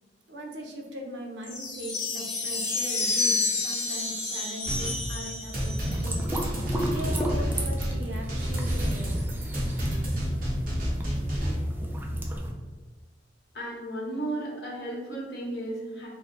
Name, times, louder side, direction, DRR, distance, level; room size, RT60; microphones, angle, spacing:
voice 1, 0.3-6.5 6.9-9.1, equal, 75° right, 1 dB, 0.6 m, -39 dB
sound 1, 1.4-6.2, left 3 dB, 85° left, 0.8 m, -30 dB
sound 2, 4.6-11.6, equal, 50° right, 0.9 m, -30 dB
sound 3, 5.9-12.5, equal, 10° right, 0.3 m, -33 dB
voice 2, 13.5-16.1, right 1 dB, 60° left, -4 dB, 1.0 m, -34 dB
3.3 x 2.1 x 3.7 m, 1.3 s
head